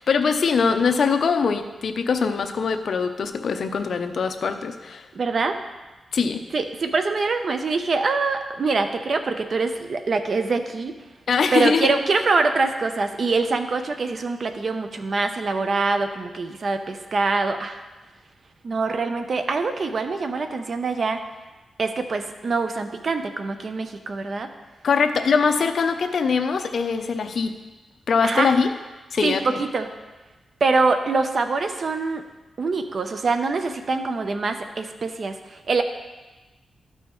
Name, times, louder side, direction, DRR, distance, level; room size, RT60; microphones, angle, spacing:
voice 1, 0.0-5.0 6.1-6.4 11.3-11.9 24.8-27.6 28.1-28.7 29.1-29.6, left 5 dB, 60° left, 7 dB, 0.6 m, -22 dB
voice 2, 5.1-5.6 6.5-10.9 11.5-17.8 18.6-21.2 21.8-24.5 28.2-28.5 29.2-29.9 30.6-32.2 32.6-35.8, right 4 dB, 50° right, 7 dB, 0.7 m, -24 dB
12.5 x 5.5 x 3.1 m, 1.2 s
cardioid pair, 95°, 0 cm